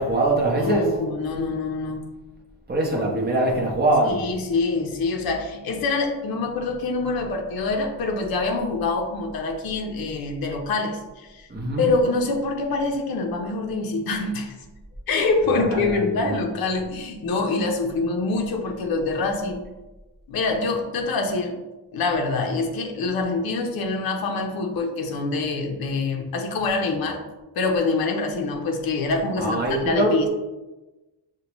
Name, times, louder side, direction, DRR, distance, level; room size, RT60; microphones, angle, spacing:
voice 1, 0.0-0.9 2.7-4.2 11.5-11.9 15.7-16.3 29.4-30.1, right 2 dB, 20° right, -1 dB, 0.7 m, -22 dB
voice 2, 0.6-2.1 4.0-11.4 11.8-14.5 15.1-19.6 20.3-21.5 21.9-27.2 27.6-30.3, left 3 dB, 55° left, 2 dB, 0.6 m, -25 dB
6.6 x 2.2 x 2.9 m, 1.1 s
wide cardioid pair, 180°, 45 cm